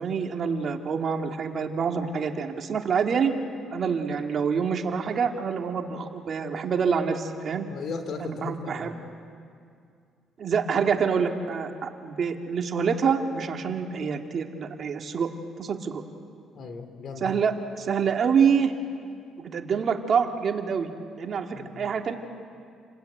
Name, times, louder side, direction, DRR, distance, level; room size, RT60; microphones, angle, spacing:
voice 1, 0.0-3.3 3.7-7.7 8.2-8.9 10.4-15.3 15.6-16.0 17.2-18.7 19.4-20.9 21.2-22.1, right 6 dB, 50° right, 4 dB, 2.1 m, -26 dB
voice 2, 7.7-9.0 16.5-17.3 21.5-21.7, left 4 dB, 55° left, 7 dB, 3.4 m, -36 dB
29.0 x 20.5 x 9.2 m, 2.3 s
cardioid pair, 100°, 0 cm